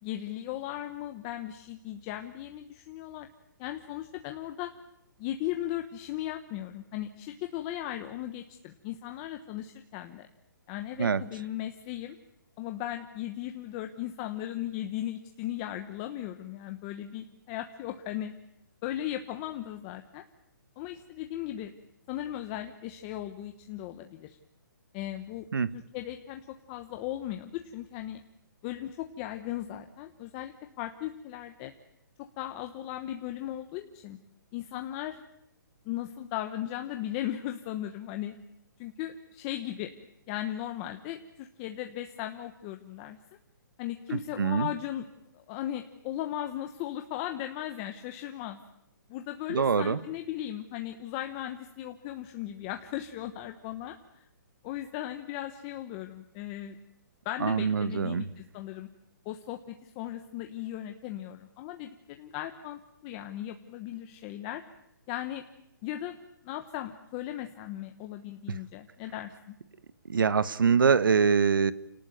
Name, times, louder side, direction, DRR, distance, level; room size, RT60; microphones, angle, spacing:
voice 1, 0.0-3.3 3.6-4.7 5.2-10.3 10.7-12.2 12.6-18.3 18.8-20.2 20.8-21.7 22.1-24.4 24.9-25.5 25.7-28.2 28.6-31.7 32.2-34.2 34.5-35.2 35.8-38.3 38.8-39.9 40.3-43.2 43.8-45.1 45.3-48.6 49.1-54.2 54.6-56.8 57.2-58.9 59.2-64.6 65.1-65.4 65.8-66.2 66.4-69.6, left 12 dB, 20° left, 6 dB, 1.0 m, -37 dB
voice 2, 44.1-44.7 49.5-50.0 57.4-58.3 70.1-71.7, right 6 dB, 90° right, 16 dB, 1.6 m, -24 dB
29.0 x 18.5 x 9.3 m, 0.81 s
hypercardioid pair, 170°, 11 cm